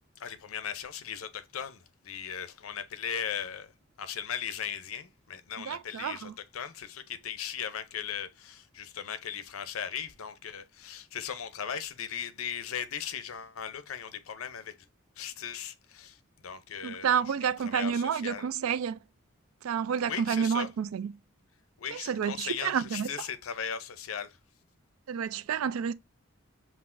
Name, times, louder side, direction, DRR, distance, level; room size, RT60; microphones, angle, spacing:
voice 1, 0.2-3.7 4.0-14.7 15.2-18.5 20.1-20.7 21.8-24.4, left 8 dB, 90° left, 0.6 m, -38 dB
voice 2, 5.7-6.3 16.8-19.0 19.6-21.1 21.9-23.1 25.1-25.9, right 7 dB, 85° right, 0.3 m, -29 dB
5.7 x 2.5 x 2.5 m
head